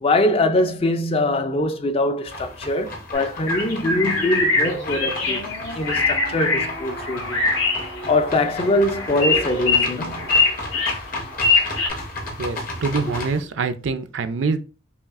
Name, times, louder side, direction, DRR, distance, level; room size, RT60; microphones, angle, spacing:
voice 1, 0.0-7.5 7.8-10.3, left 2 dB, 30° left, 0.4 m, -23 dB
sound 1, 2.2-13.4, left 1 dB, 45° left, 0.9 m, -34 dB
sound 2, 3.1-11.9, left 3 dB, 75° left, 1.5 m, -23 dB
sound 3, 4.0-10.5, equal, 90° left, 1.3 m, -38 dB
voice 2, 12.4-14.6, right 4 dB, 75° right, 0.4 m, -25 dB
5.6 x 2.3 x 2.5 m
head